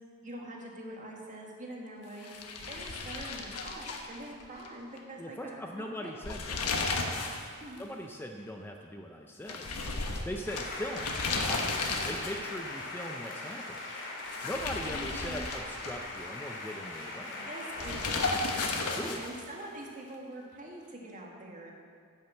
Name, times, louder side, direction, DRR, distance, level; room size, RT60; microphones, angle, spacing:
voice 1, 0.2-6.1 7.6-7.9 14.8-15.5 17.3-18.5 19.2-21.7, right 1 dB, 35° right, -1 dB, 1.7 m, -44 dB
sound 1, 2.2-4.7 5.0-5.1 6.1-7.5 7.8-7.9 9.5-12.6 14.2-16.2 17.8-19.5, left 3 dB, 90° left, 1.2 m, -34 dB
voice 2, 5.2-6.7 7.8-9.7 10.2-11.2 11.5-13.8 14.4-17.5 19.0-19.2, left 1 dB, 10° left, 2 dB, 0.5 m, -40 dB
sound 2, 10.4-18.6, left 2 dB, 60° left, 2.2 m, -40 dB
10.5 x 6.4 x 7.0 m, 2.2 s
head